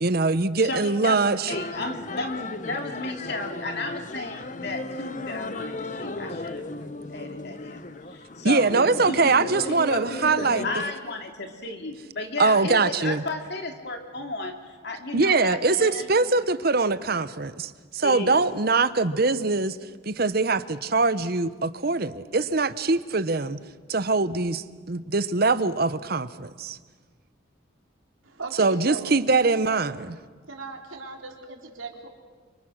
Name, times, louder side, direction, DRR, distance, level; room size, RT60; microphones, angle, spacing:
voice 1, 0.0-1.5 8.4-10.7 12.4-13.2 15.1-19.8 20.0-23.6 23.9-26.8 28.6-30.2, right 3 dB, 50° right, 0.9 m, -23 dB
voice 2, 0.6-6.6 7.1-7.8 8.1-16.3 18.0-18.4, left 2 dB, 55° left, 2.7 m, -34 dB
sound 1, 1.5-10.9, left 2 dB, 40° left, 0.9 m, -35 dB
voice 3, 28.2-29.2 30.5-32.1, right 3 dB, 80° right, 3.6 m, -37 dB
29.5 x 25.0 x 6.4 m
head